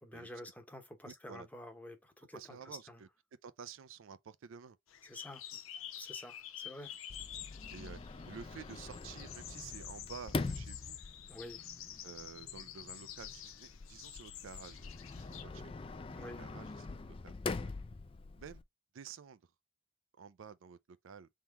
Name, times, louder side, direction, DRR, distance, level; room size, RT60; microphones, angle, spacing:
voice 1, 0.0-3.0 5.0-7.0 11.3-11.7 16.1-16.4, left 1 dB, 10° left, 0.8 m, -49 dB
voice 2, 1.1-1.5 2.3-3.1 3.4-4.8 7.7-8.0 8.3-11.0 12.0-15.9 16.2-17.3 17.6-17.8 18.4-18.6 18.9-19.4 20.2-20.8 21.0-21.3, right 6 dB, 75° right, 0.4 m, -51 dB
sound 1, 4.9-15.4, left 11 dB, 85° left, 0.6 m, -49 dB
Sliding door, 7.1-18.6, left 3 dB, 25° left, 0.3 m, -44 dB
3.7 x 2.9 x 4.5 m
head